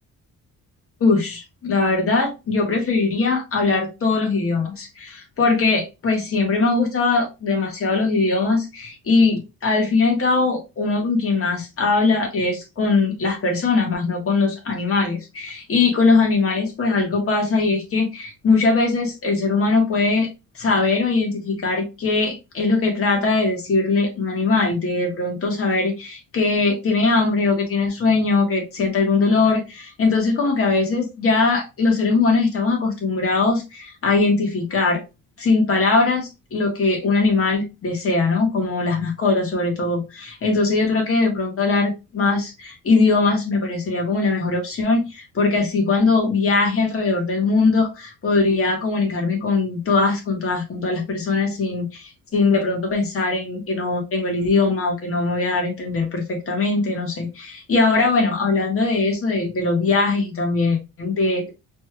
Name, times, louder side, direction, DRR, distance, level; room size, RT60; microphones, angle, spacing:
voice 1, 1.0-20.3 20.6-35.0 35.4-61.5, left 3 dB, 40° left, 1 dB, 1.6 m, -21 dB
4.2 x 3.2 x 2.3 m, 0.25 s
cardioid pair, 145°, 34 cm